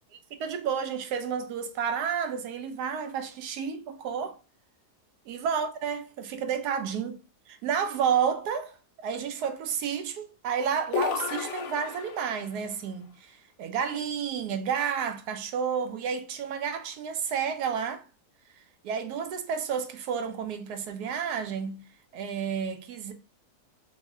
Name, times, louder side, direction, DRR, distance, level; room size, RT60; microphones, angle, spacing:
voice 1, 0.1-4.4 5.3-7.2 7.5-8.8 9.0-18.0 18.8-21.8 22.1-23.1, right 7 dB, 80° right, 1.1 m, -31 dB
sound 1, 10.9-12.5, left 6 dB, 70° left, 0.7 m, -32 dB
3.6 x 2.1 x 3.5 m
omnidirectional pair, 1.7 m